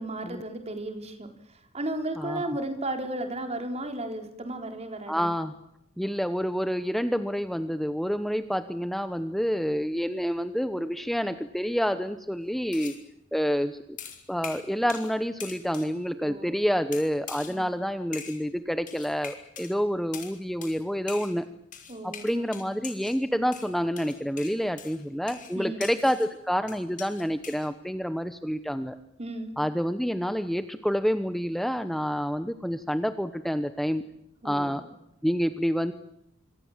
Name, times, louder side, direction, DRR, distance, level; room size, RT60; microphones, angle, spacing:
voice 1, 0.0-5.3 16.2-16.7 17.5-17.7 21.9-22.7 25.5-25.9 29.2-29.5 34.4-34.9, right 1 dB, 35° right, 5 dB, 4.1 m, -35 dB
voice 2, 2.2-2.5 5.1-5.5 6.0-12.9 13.3-13.8 14.3-21.4 22.0-29.0 29.6-34.0 34.4-34.8 35.2-35.9, equal, ahead, 10 dB, 1.0 m, -28 dB
sound 1, 12.7-13.0 14.0-15.1 15.4-15.9 16.9-17.6 18.1-18.4 18.9-19.7 20.1-20.3 20.6-20.8 21.1-21.4 21.7-23.2 23.5-26.3 26.7-27.7, left 7 dB, 40° left, 5.8 m, -42 dB
26.0 x 25.5 x 7.4 m, 0.79 s
head